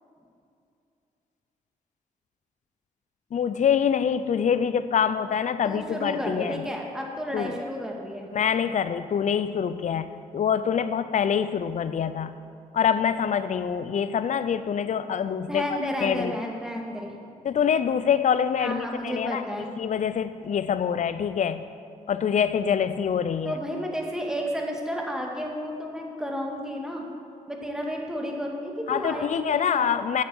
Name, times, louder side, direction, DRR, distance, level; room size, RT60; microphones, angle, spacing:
voice 1, 3.3-6.6 7.3-7.6 8.3-12.3 12.7-15.6 16.0-16.3 17.4-19.4 19.8-21.6 22.1-23.6 28.9-30.2, left 7 dB, 50° left, 13 dB, 0.5 m, -25 dB
voice 2, 5.6-8.3 15.5-17.1 18.6-19.7 23.5-27.0 27.5-29.9, equal, 5° right, 0 dB, 2.0 m, -32 dB
8.0 x 7.5 x 7.8 m, 2.5 s
supercardioid pair, 50°, 16 cm